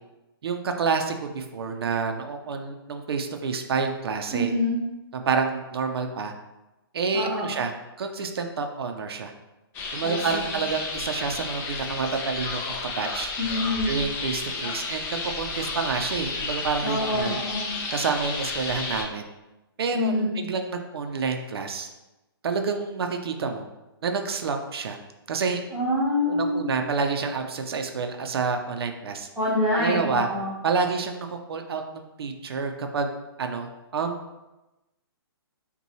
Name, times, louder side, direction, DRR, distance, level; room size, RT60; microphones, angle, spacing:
voice 1, 0.4-4.5 5.1-6.3 6.9-7.7 8.0-9.3 9.9-13.3 13.8-15.1 15.4-17.4 17.9-19.2 19.8-21.9 22.4-23.7 24.0-25.0 25.3-25.6 26.3-29.3 29.7-30.3 30.6-33.1 33.4-34.2, right 5 dB, 70° right, 5 dB, 0.5 m, -28 dB
voice 2, 4.3-4.8 7.1-7.5 10.0-10.5 13.4-13.9 16.8-17.7 19.9-20.3 25.7-26.6 29.4-30.5, left 1 dB, ahead, -14 dB, 0.9 m, -26 dB
sound 1, 9.7-19.0, left 3 dB, 15° left, 0.4 m, -32 dB
5.4 x 2.2 x 3.0 m, 1.0 s
hypercardioid pair, 145°, 13 cm